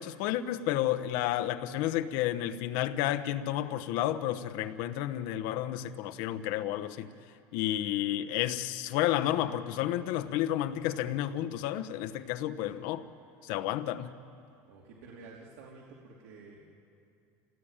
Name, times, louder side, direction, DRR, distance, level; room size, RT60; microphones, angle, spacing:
voice 1, 0.0-7.1 7.5-13.0 13.4-14.1, left 13 dB, 65° left, 10 dB, 1.1 m, -31 dB
voice 2, 14.7-16.7, right 3 dB, 90° right, -3 dB, 3.2 m, -50 dB
28.0 x 18.5 x 9.0 m, 2.5 s
cardioid pair, 160°, 8 cm